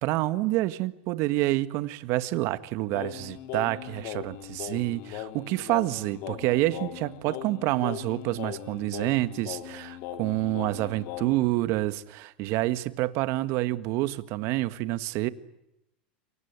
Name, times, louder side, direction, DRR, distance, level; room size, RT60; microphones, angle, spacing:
voice 1, 0.0-15.3, right 17 dB, 55° right, 13 dB, 1.7 m, -28 dB
Singing, 2.9-11.5, left 11 dB, 55° left, 3.0 m, -39 dB
28.5 x 24.0 x 8.3 m, 0.87 s
hypercardioid pair, 110°, 6 cm